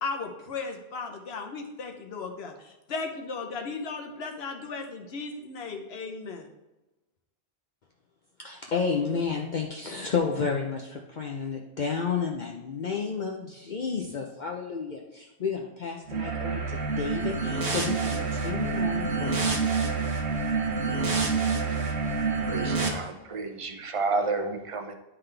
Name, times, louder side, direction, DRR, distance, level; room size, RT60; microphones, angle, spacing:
voice 1, 0.0-6.5, left 4 dB, 70° left, 4 dB, 1.1 m, -36 dB
voice 2, 8.4-19.6, left 5 dB, 50° left, 1 dB, 0.7 m, -31 dB
sound 1, 16.1-22.9, right 4 dB, 80° right, 1.2 m, -27 dB
voice 3, 22.4-25.0, right 3 dB, 35° right, 6 dB, 0.6 m, -31 dB
11.0 x 3.9 x 3.3 m, 1.0 s
omnidirectional pair, 1.1 m